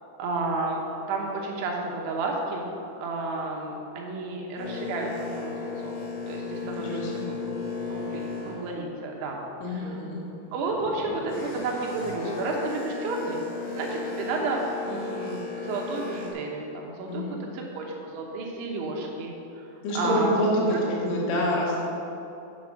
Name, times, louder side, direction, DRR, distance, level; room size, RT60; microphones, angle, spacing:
voice 1, 0.2-0.8 1.1-2.6 3.0-6.0 6.3-9.4 9.7-10.1 10.5-13.4 13.7-20.5, right 3 dB, 75° right, 0 dB, 3.3 m, -32 dB
Boat Water vehicle, 4.6-9.6 10.0-16.3, left 4 dB, 55° left, 2.7 m, -35 dB
voice 2, 6.8-7.3 9.6-10.2 17.1-17.4 19.8-21.9, equal, 80° left, -4 dB, 4.5 m, -27 dB
7.7 x 7.5 x 6.4 m, 2.8 s
omnidirectional pair, 5.8 m